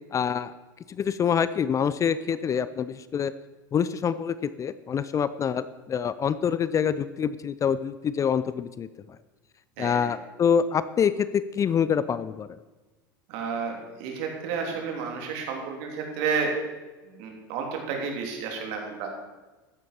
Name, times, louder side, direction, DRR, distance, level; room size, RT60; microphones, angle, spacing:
voice 1, 0.1-0.5 0.9-3.3 3.7-8.9 9.8-12.5, left 7 dB, 30° left, 15 dB, 0.5 m, -26 dB
voice 2, 9.8-10.1 13.3-16.5 17.1-19.1, right 5 dB, 60° right, 2 dB, 3.1 m, -31 dB
13.5 x 10.5 x 4.4 m, 1.2 s
hypercardioid pair, 85°, 11 cm